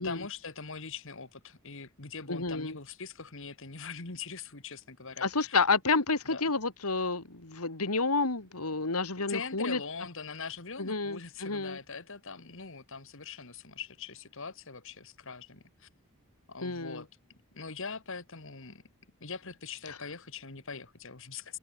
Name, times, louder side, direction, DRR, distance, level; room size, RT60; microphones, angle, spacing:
voice 1, 0.0-5.6 6.3-6.4 9.3-15.9 16.5-18.8 19.2-21.6, left 5 dB, 60° left, 2.2 m, -42 dB
voice 2, 2.3-2.8 5.2-9.8 10.8-11.8 16.6-17.0 19.9-20.0, left 3 dB, 85° left, 2.7 m, -30 dB
open air
head